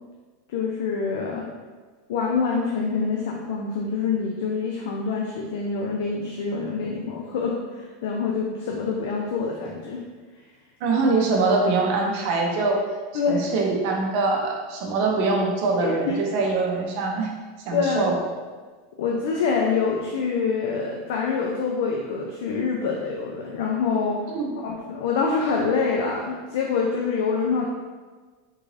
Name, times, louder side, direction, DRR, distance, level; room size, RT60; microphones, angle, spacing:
voice 1, 0.5-1.5 2.1-10.0 13.1-13.5 15.8-16.2 17.7-18.1 19.0-24.2 24.6-27.7, left 5 dB, 60° left, -1 dB, 0.4 m, -26 dB
voice 2, 10.8-12.8 13.3-17.3 17.7-18.2 24.3-24.5, right 3 dB, 45° right, 0 dB, 0.6 m, -23 dB
3.7 x 2.5 x 3.1 m, 1.4 s
supercardioid pair, 175°, 0 cm